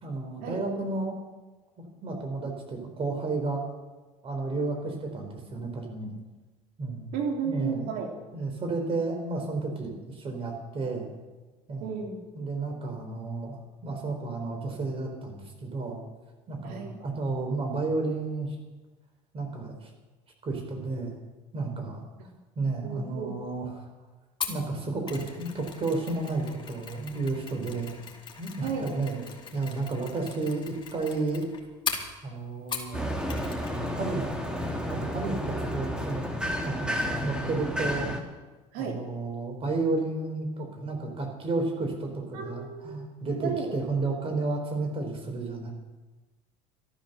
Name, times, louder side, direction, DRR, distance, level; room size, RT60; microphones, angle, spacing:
voice 1, 0.0-1.2 2.0-3.6 4.2-6.1 6.8-7.1 7.4-7.9 8.3-11.1 11.7-11.9 12.4-16.0 16.5-18.6 19.3-19.9 20.4-21.1 21.5-22.0 22.6-23.9 24.5-28.0 28.4-29.2 29.5-31.5 32.2-33.0 33.6-34.3 34.7-36.3 36.6-38.1 38.8-45.7, right 3 dB, 35° right, 3 dB, 4.4 m, -32 dB
voice 2, 7.1-8.1 11.8-12.2 16.6-17.0 22.8-23.3 28.6-29.2 38.7-39.0 42.3-43.1 43.4-43.8, right 6 dB, 70° right, 2 dB, 3.3 m, -33 dB
Mechanisms, 24.4-33.0 33.3-33.8 34.0-34.1, left 6 dB, 30° left, 2.8 m, -39 dB
sound 1, 32.9-38.2, equal, 5° right, 2.4 m, -31 dB
13.0 x 12.0 x 6.9 m, 1.2 s
supercardioid pair, 95°, 16 cm